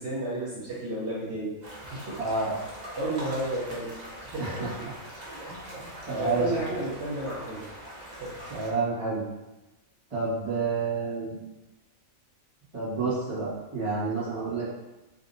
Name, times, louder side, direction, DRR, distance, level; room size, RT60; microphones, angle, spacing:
voice 1, 0.0-2.2 2.9-4.7 5.4-7.7 8.2-8.4, right 1 dB, 60° right, -9 dB, 1.0 m, -33 dB
sound 1, 1.6-8.7, equal, 40° right, 0.7 m, -42 dB
voice 2, 2.2-2.5 4.4-4.7 5.5-5.6 6.1-6.5 8.5-9.2 10.1-11.4 12.7-14.7, right 4 dB, 25° right, -9 dB, 1.2 m, -29 dB
3.8 x 2.6 x 2.5 m, 1.0 s
omnidirectional pair, 1.4 m